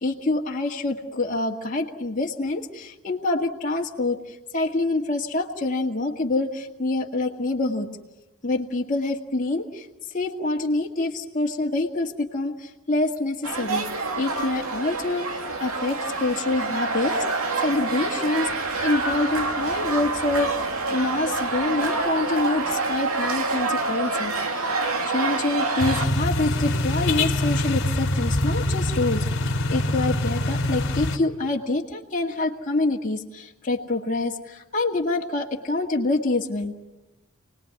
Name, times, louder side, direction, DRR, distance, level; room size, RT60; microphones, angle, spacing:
voice 1, 0.0-4.2 4.5-7.9 8.4-9.9 10.1-13.8 14.2-15.2 15.6-18.5 18.8-20.5 20.9-24.7 25.1-29.2 29.7-36.7, left 2 dB, 40° left, -1 dB, 1.9 m, -26 dB
sound 1, 13.4-26.1, right 3 dB, 85° right, 2.5 m, -27 dB
sound 2, 25.8-31.2, left 1 dB, 60° left, 2.0 m, -24 dB
29.0 x 19.5 x 9.6 m, 1.1 s
head